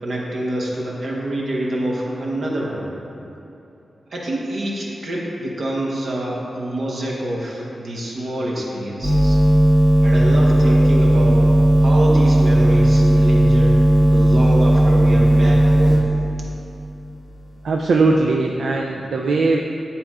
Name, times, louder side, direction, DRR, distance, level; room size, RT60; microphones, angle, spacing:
voice 1, 0.0-2.9 4.1-9.4 10.0-11.4 11.8-13.8 14.1-16.0, right 1 dB, 60° right, -4 dB, 1.0 m, -26 dB
sound 1, 9.0-16.0, right 1 dB, 10° right, 0.9 m, -14 dB
voice 2, 17.6-19.6, right 3 dB, 75° right, 0 dB, 0.3 m, -19 dB
9.9 x 4.2 x 2.4 m, 2.8 s
wide cardioid pair, 170°, 0 cm